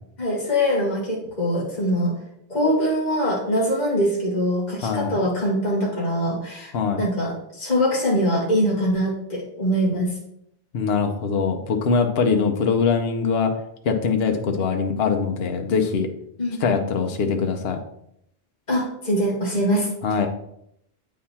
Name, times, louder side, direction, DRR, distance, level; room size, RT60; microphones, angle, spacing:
voice 1, 0.2-2.1 2.5-10.2 16.4-16.6 18.7-19.9, equal, 45° left, -5 dB, 1.9 m, -23 dB
voice 2, 4.8-5.1 6.7-7.0 10.7-13.5 13.8-16.1 16.6-17.8 20.0-20.3, left 5 dB, 70° left, 4 dB, 1.0 m, -22 dB
8.6 x 4.1 x 4.1 m, 0.74 s
omnidirectional pair, 1.1 m